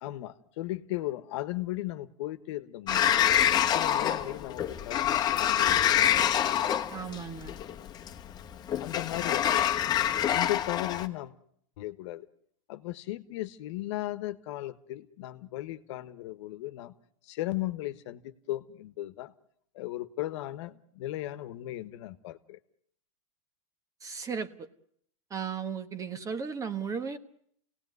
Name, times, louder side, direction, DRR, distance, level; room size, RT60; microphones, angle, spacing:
voice 1, 0.0-3.3 3.6-5.8 8.8-9.7 10.3-11.4 11.8-12.3 12.7-16.9 17.3-19.3 19.7-22.6, left 16 dB, 60° left, 12 dB, 1.3 m, -36 dB
Sliding door, 2.9-11.1, left 10 dB, 25° left, 1.3 m, -26 dB
voice 2, 6.9-7.5 24.0-24.7 25.3-27.2, right 6 dB, 20° right, 12 dB, 1.2 m, -35 dB
27.0 x 17.5 x 9.6 m, 0.70 s
supercardioid pair, 135°, 17 cm